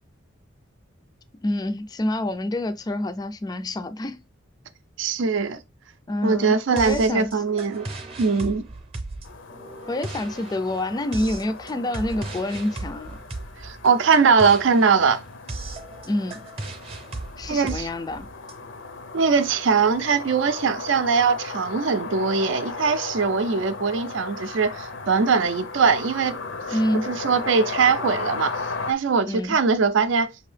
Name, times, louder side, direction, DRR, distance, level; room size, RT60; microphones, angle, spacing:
voice 1, 1.4-4.2 6.1-7.4 9.9-13.2 16.1-16.4 17.4-18.3 26.7-27.1 29.3-29.6, left 1 dB, 20° left, 0.3 m, -27 dB
voice 2, 5.0-5.6 6.2-7.9 8.2-8.6 13.6-15.2 17.5-17.9 19.1-26.4 26.7-26.8 27.0-28.6 28.9-30.3, right 5 dB, 65° right, 0.5 m, -21 dB
sound 1, 6.8-18.5, right 2 dB, 30° right, 0.7 m, -37 dB
sound 2, 9.2-28.9, left 3 dB, 70° left, 0.6 m, -36 dB
6.0 x 2.8 x 3.2 m
head